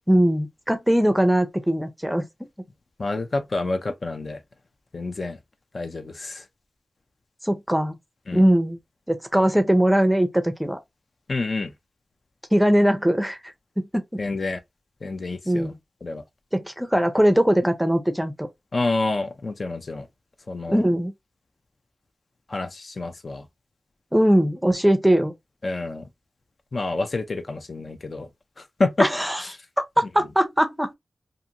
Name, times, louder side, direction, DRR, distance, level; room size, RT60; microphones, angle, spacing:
voice 1, 0.1-2.3 7.4-7.9 8.3-8.8 9.1-10.8 12.5-13.4 13.8-14.2 15.5-15.7 16.5-18.5 20.7-21.1 24.1-25.3 29.0-29.4 30.0-30.9, equal, 5° right, 0.5 m, -20 dB
voice 2, 3.0-4.4 4.9-5.4 5.7-6.4 8.3-8.4 11.3-11.7 14.2-14.6 15.0-15.7 16.0-16.2 18.7-20.1 20.5-20.8 22.5-23.5 25.6-26.1 26.7-28.3 28.6-29.1 29.4-29.5, left 3 dB, 55° left, 0.4 m, -28 dB
2.5 x 2.5 x 2.8 m
wide cardioid pair, 80°, 0 cm